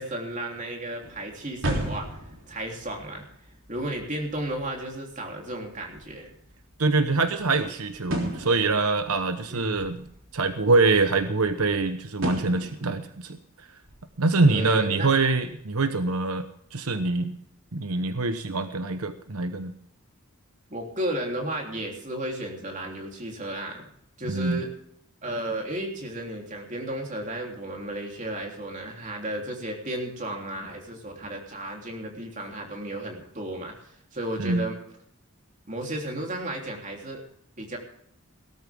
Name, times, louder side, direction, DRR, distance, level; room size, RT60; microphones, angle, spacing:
voice 1, 0.0-3.2 3.7-6.3 9.5-9.8 14.5-15.1 20.7-23.9 24.2-24.7 25.2-34.8 35.7-37.2 37.6-37.8, right 1 dB, 35° right, 1 dB, 3.3 m, -34 dB
sound 1, 1.0-11.7 12.2-13.3 13.8-14.4 14.7-14.8 15.3-15.6, right 1 dB, 65° right, 3.4 m, -37 dB
voice 2, 6.8-10.1 10.3-13.4 14.2-16.5 16.7-17.4 17.7-19.7 24.3-24.6 34.4-34.6, right 3 dB, 90° right, 9 dB, 1.1 m, -24 dB
17.5 x 13.5 x 3.6 m, 0.69 s
head